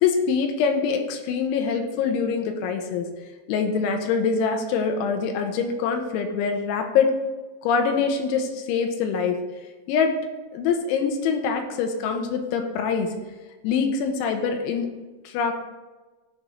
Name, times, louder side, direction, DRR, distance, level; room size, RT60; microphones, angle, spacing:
voice 1, 0.0-3.1 3.5-7.2 7.6-9.4 9.9-10.1 10.5-13.1 13.6-14.9 15.3-15.6, left 6 dB, 80° left, 4 dB, 3.1 m, -24 dB
15.0 x 5.2 x 3.1 m, 1.2 s
omnidirectional pair, 5.7 m